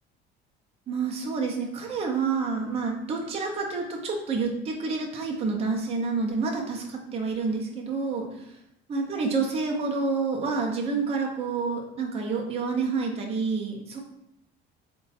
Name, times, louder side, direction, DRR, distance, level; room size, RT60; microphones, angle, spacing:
voice 1, 0.9-8.6 8.9-14.0, right 4 dB, 30° right, 1 dB, 0.5 m, -28 dB
3.7 x 2.2 x 4.0 m, 0.81 s
cardioid pair, 145°, 20 cm